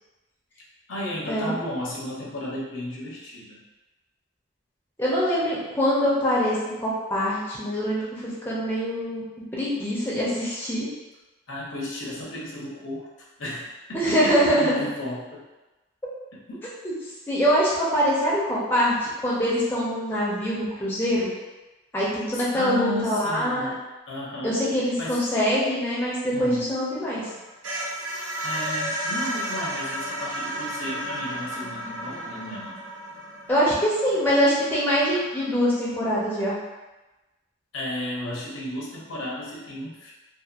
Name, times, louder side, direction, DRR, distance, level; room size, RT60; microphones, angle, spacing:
voice 1, 0.9-3.6 11.5-13.1 13.4-15.4 16.5-16.6 22.3-23.8 24.1-24.6 25.0-25.2 26.3-26.7 28.4-32.8 37.7-40.1, left 1 dB, 85° left, -4 dB, 0.7 m, -33 dB
voice 2, 5.0-9.2 9.5-10.9 13.9-14.7 16.8-16.9 17.3-21.3 21.9-23.7 24.4-27.3 33.5-36.6, equal, 10° left, -7 dB, 0.5 m, -24 dB
sound 1, 26.9-35.8, right 1 dB, 80° right, 0.7 m, -33 dB
2.8 x 2.4 x 2.4 m, 1.1 s
head